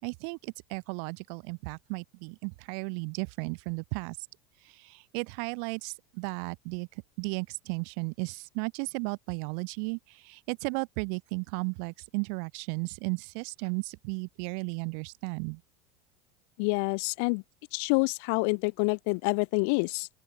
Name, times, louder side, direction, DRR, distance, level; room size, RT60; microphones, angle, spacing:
voice 1, 0.0-4.2 4.6-6.9 7.2-15.6, right 40 dB or more, 65° right, 6.7 m, -35 dB
voice 2, 16.6-17.4 17.7-20.1, left 36 dB, 70° left, 1.0 m, -27 dB
open air
hypercardioid pair, 100°, 0 cm